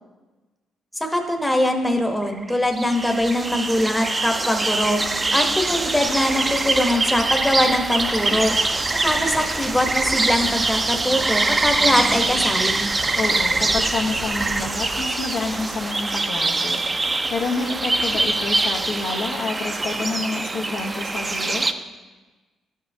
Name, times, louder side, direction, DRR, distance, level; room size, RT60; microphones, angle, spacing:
voice 1, 1.0-5.0 5.3-8.5 9.0-12.9, left 1 dB, 10° left, 4 dB, 0.8 m, -22 dB
sound 1, 2.2-21.7, right 2 dB, 25° right, 0.4 m, -23 dB
voice 2, 13.2-16.8 17.3-21.7, left 3 dB, 80° left, 1 dB, 0.8 m, -28 dB
12.0 x 5.5 x 2.6 m, 1.2 s
cardioid pair, 90°, 0 cm